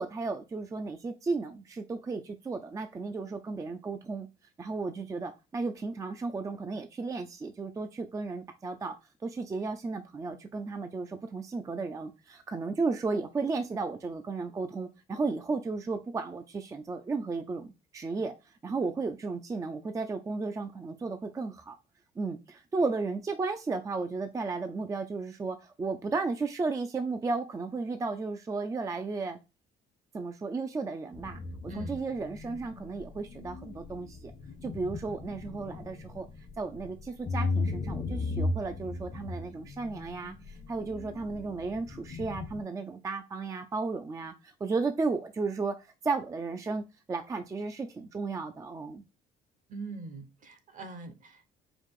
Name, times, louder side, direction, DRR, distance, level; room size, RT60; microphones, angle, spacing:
voice 1, 0.0-4.3 4.6-8.9 9.2-17.7 17.9-21.8 22.2-29.4 30.1-34.3 34.6-36.3 36.6-49.0, right 4 dB, 20° right, 0.4 m, -34 dB
sound 1, 31.1-42.6, left 3 dB, 30° left, 0.6 m, -37 dB
voice 2, 49.7-51.5, right 3 dB, 50° right, 0.9 m, -43 dB
4.8 x 2.4 x 3.6 m
cardioid pair, 110°, 17 cm